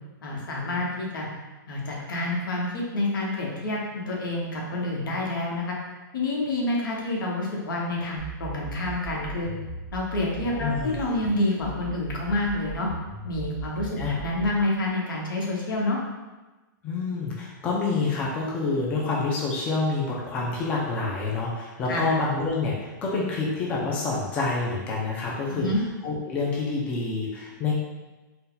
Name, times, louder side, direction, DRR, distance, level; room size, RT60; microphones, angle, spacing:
voice 1, 0.2-1.3 1.7-5.7 6.1-9.5 9.9-12.9 13.2-16.0 21.9-22.1 25.5-25.8, left 2 dB, 85° left, -3 dB, 1.2 m, -28 dB
sound 1, 8.2-11.2 11.6-14.6, right 6 dB, 65° left, 1.2 m, -38 dB
voice 2, 10.5-11.1 14.0-14.2 16.8-25.7 26.0-27.7, left 3 dB, 15° left, -4 dB, 0.4 m, -27 dB
4.0 x 2.2 x 3.8 m, 1.1 s
supercardioid pair, 175°, 11 cm